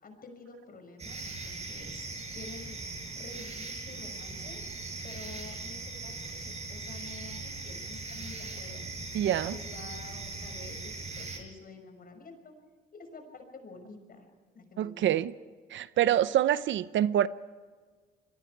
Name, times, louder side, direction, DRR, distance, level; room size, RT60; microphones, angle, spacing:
voice 1, 0.0-2.9 3.1-4.6 5.0-8.8 9.2-12.5 12.9-14.3 14.5-15.1, left 3 dB, 45° left, 6.2 m, -49 dB
sound 1, 1.0-11.4, right 3 dB, 35° right, 5.5 m, -40 dB
voice 2, 9.1-9.6 14.8-15.3 15.7-17.3, right 11 dB, 70° right, 0.7 m, -26 dB
28.0 x 22.5 x 4.7 m
cardioid pair, 90°, 20 cm